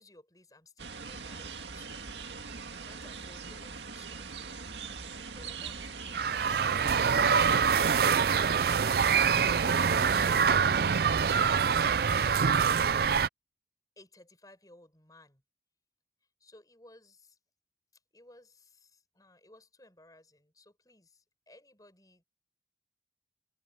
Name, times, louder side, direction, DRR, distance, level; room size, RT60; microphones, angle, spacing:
voice 1, 0.0-2.1 2.7-4.4 5.3-6.6 6.9-9.1 9.7-13.0 14.0-15.4 16.4-17.4 18.1-22.2, left 2 dB, 20° left, 6.8 m, -57 dB
sound 1, 0.8-12.3, right 4 dB, 80° right, 2.0 m, -41 dB
sound 2, 6.1-13.3, right 6 dB, 60° right, 0.4 m, -25 dB
head